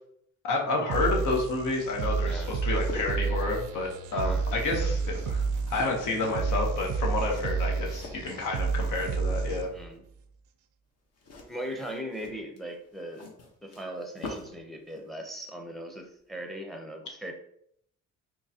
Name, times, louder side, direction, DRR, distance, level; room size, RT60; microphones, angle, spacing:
voice 1, 0.4-5.4 5.7-9.7, left 3 dB, 80° left, 0 dB, 1.0 m, -30 dB
sound 1, 0.9-9.9, right 4 dB, 80° right, 0.5 m, -30 dB
sound 2, 2.5-8.9 9.2-9.8 11.2-14.6 14.9-15.1, left 2 dB, 55° left, 1.0 m, -45 dB
voice 2, 4.1-4.5 4.8-5.0 9.7-10.0 11.5-13.3 13.6-17.3, equal, ahead, 3 dB, 0.6 m, -39 dB
3.7 x 3.0 x 2.7 m, 0.70 s
cardioid pair, 90°, 30 cm